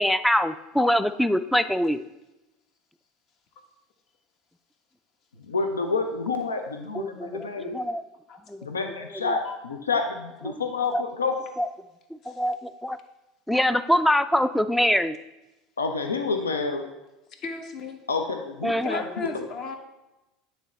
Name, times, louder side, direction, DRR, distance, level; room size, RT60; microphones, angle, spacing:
voice 1, 0.0-2.0 6.9-8.0 8.5-8.6 10.9-11.0 11.6-11.7 12.3-13.0 13.5-15.2 18.6-19.0, equal, 5° left, 12 dB, 0.3 m, -24 dB
voice 2, 5.4-7.8 8.6-11.3 15.8-16.9 18.1-19.5, left 4 dB, 85° left, 5 dB, 0.5 m, -28 dB
voice 3, 17.4-18.0 18.8-19.8, left 4 dB, 50° left, 4 dB, 1.1 m, -35 dB
9.2 x 3.4 x 4.1 m, 0.99 s
figure-of-eight pair, 75°, 0 cm